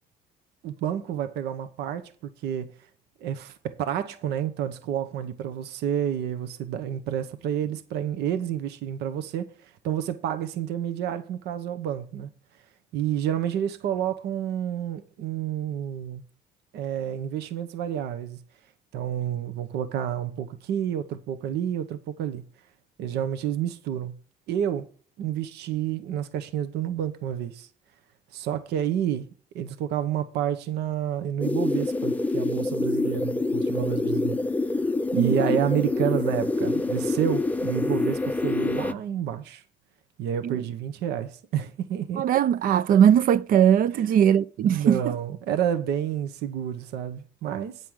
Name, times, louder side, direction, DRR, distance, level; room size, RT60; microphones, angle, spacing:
voice 1, 0.6-2.7 3.2-12.3 12.9-16.2 16.7-18.4 18.9-22.4 23.0-24.1 24.5-24.9 25.2-27.7 28.3-29.3 29.5-34.4 35.1-39.6 40.2-42.2 43.9-44.1 44.6-47.8, right 10 dB, 80° right, 1.0 m, -29 dB
sound 1, 31.4-38.9, left 2 dB, 10° left, 0.5 m, -26 dB
voice 2, 42.2-45.1, right 9 dB, 55° right, 0.5 m, -20 dB
9.3 x 5.5 x 6.3 m
cardioid pair, 110°, 17 cm